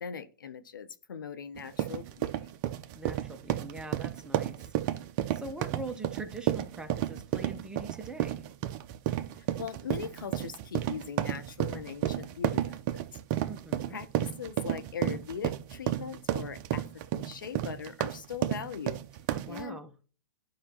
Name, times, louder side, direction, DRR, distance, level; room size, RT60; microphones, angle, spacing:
voice 1, 0.0-2.5 9.4-13.0 13.9-16.9 17.1-19.0 19.5-19.8, left 7 dB, 75° left, 0.8 m, -40 dB
sound 1, 1.6-19.6, right 12 dB, 40° right, 0.7 m, -32 dB
voice 2, 2.9-4.7 5.3-8.5 13.5-14.0 19.3-19.9, right 3 dB, 5° right, 1.0 m, -42 dB
11.5 x 5.1 x 2.9 m
hypercardioid pair, 120°, 11 cm